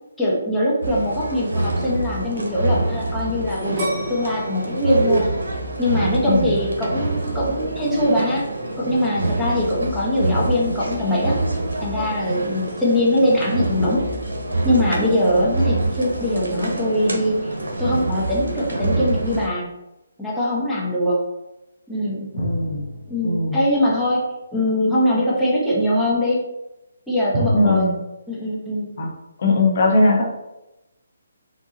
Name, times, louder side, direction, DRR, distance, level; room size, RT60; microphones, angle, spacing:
voice 1, 0.2-5.3 5.8-8.4 8.8-11.4 11.8-14.1 14.6-17.4 17.8-19.7 20.2-21.2 21.9-22.3 23.1-24.2 24.5-26.4 27.1-27.9 28.3-28.9, left 1 dB, 5° left, -8 dB, 1.2 m, -22 dB
sound 1, 0.8-19.5, right 2 dB, 85° right, 1.0 m, -26 dB
sound 2, 3.8-6.7 7.2-7.7, right 1 dB, 30° right, 1.4 m, -35 dB
voice 2, 22.3-22.9 23.2-23.6 27.5-27.9 29.0-29.1 29.4-30.2, left 2 dB, 50° left, 0 dB, 1.2 m, -19 dB
sound 3, 22.4-24.0 27.3-27.9, equal, 65° right, 1.5 m, -28 dB
4.1 x 2.7 x 3.8 m, 0.94 s
figure-of-eight pair, 150°, 0 cm